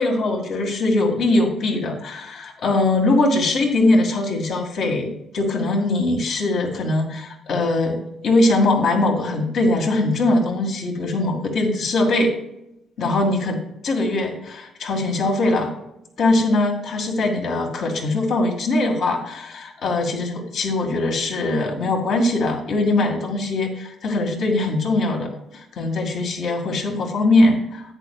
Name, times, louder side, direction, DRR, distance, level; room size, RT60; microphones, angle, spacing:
voice 1, 0.0-12.3 13.0-13.6 13.8-15.7 16.2-27.8, left 2 dB, 70° left, 1 dB, 2.0 m, -21 dB
10.5 x 9.0 x 2.4 m, 0.84 s
cardioid pair, 90°, 0 cm